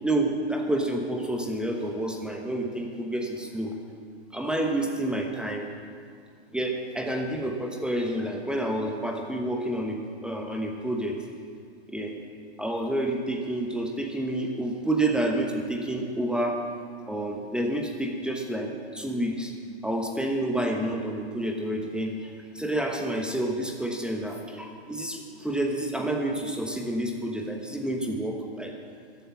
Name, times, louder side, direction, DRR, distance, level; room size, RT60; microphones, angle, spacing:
voice 1, 0.0-3.8 4.3-5.7 6.5-11.2 11.9-12.1 12.6-16.6 17.1-19.5 19.8-22.1 22.5-28.7, right 1 dB, 5° right, 2 dB, 1.1 m, -29 dB
13.5 x 8.1 x 9.6 m, 2.1 s
hypercardioid pair, 125°, 33 cm